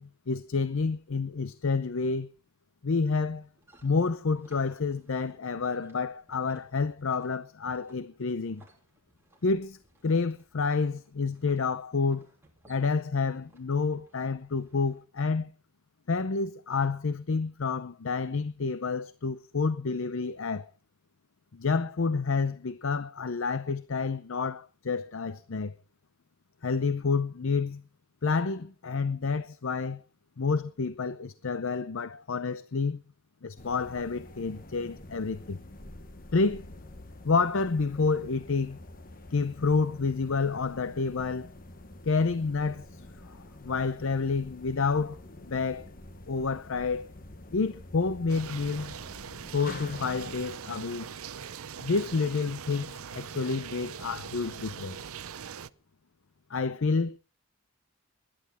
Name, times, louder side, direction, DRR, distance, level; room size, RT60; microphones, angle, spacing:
voice 1, 0.0-2.3 2.8-3.5 3.8-8.6 9.4-9.8 10.0-12.2 12.7-15.5 16.1-20.7 21.5-25.7 26.6-27.8 28.2-30.0 30.4-33.0 33.4-35.6 36.3-36.7 37.2-38.8 39.3-41.5 42.0-45.2 45.4-45.9 46.3-47.0 47.5-49.0 49.5-51.1 51.8-55.0 56.5-57.1, left 4 dB, 60° left, 0.6 m, -29 dB
sound 1, 3.4-15.0, right 1 dB, 10° right, 3.2 m, -63 dB
sound 2, 33.6-50.4, left 2 dB, 40° left, 1.2 m, -47 dB
sound 3, 48.3-55.7, right 7 dB, 70° right, 0.6 m, -41 dB
20.0 x 11.5 x 4.3 m
head